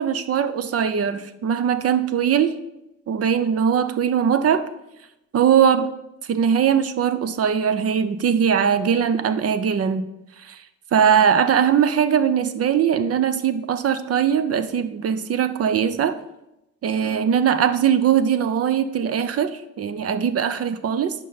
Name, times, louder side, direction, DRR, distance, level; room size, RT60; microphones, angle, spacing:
voice 1, 0.0-2.5 3.1-4.7 5.3-5.9 6.3-10.1 10.4-10.6 10.9-16.2 16.8-21.1, right 8 dB, 50° right, 12 dB, 0.6 m, -20 dB
9.8 x 5.4 x 4.0 m, 0.89 s
cardioid pair, 90°, 30 cm